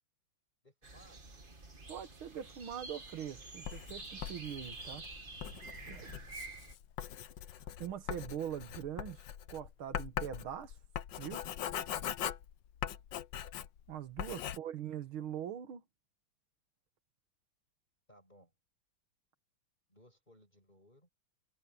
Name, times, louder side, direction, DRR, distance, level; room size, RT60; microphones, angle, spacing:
voice 1, 0.6-1.2 6.2-6.4 18.1-18.5 19.9-21.1, equal, 20° left, 7.0 m, -63 dB
sound 1, 0.8-6.7, right 3 dB, 25° right, 2.0 m, -49 dB
voice 2, 1.9-5.1 5.9-6.1 7.8-9.2 9.5-10.8 11.2-11.5 13.9-15.8, right 10 dB, 70° right, 2.1 m, -42 dB
Writing, 3.6-13.9 14.2-14.6, left 10 dB, 65° left, 1.4 m, -41 dB
omnidirectional pair, 2.4 m